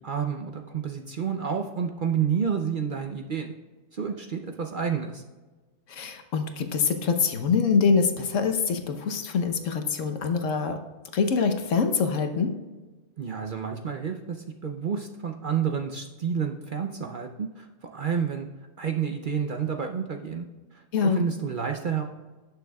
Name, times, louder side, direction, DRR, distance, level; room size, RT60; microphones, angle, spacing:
voice 1, 0.0-3.5 3.9-5.2 13.2-18.5 18.8-20.5 20.7-22.0, right 7 dB, 50° right, 4 dB, 0.7 m, -30 dB
voice 2, 5.9-10.8 11.1-12.5 20.9-21.2, left 5 dB, 75° left, 6 dB, 1.2 m, -24 dB
17.5 x 6.7 x 2.3 m, 1.2 s
omnidirectional pair, 1.3 m